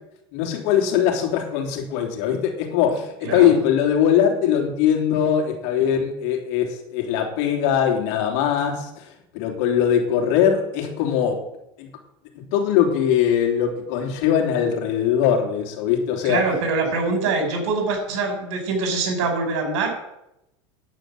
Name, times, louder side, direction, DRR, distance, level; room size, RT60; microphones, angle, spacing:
voice 1, 0.3-9.0 9.3-11.4 11.8-11.9 12.3-16.4, left 9 dB, 65° left, 3 dB, 3.4 m, -21 dB
voice 2, 16.2-19.9, right 3 dB, 70° right, 3 dB, 5.6 m, -24 dB
10.0 x 9.1 x 7.9 m, 0.86 s
supercardioid pair, 110°, 15 cm